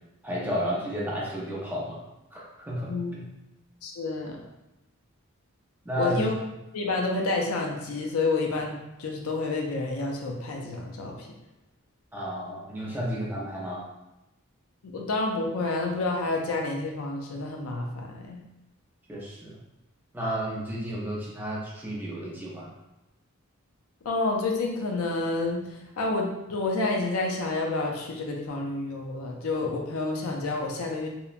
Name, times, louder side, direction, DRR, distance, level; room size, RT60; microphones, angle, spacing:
voice 1, 0.2-2.0 2.3-3.2 5.8-6.2 12.1-13.8 19.1-19.6 20.1-22.7, equal, 10° right, -5 dB, 0.5 m, -32 dB
voice 2, 3.8-4.4 6.0-6.3 6.7-11.3 14.8-18.4 24.0-25.7 26.0-31.1, left 3 dB, 85° left, 1 dB, 0.4 m, -29 dB
2.9 x 2.1 x 2.4 m, 0.96 s
head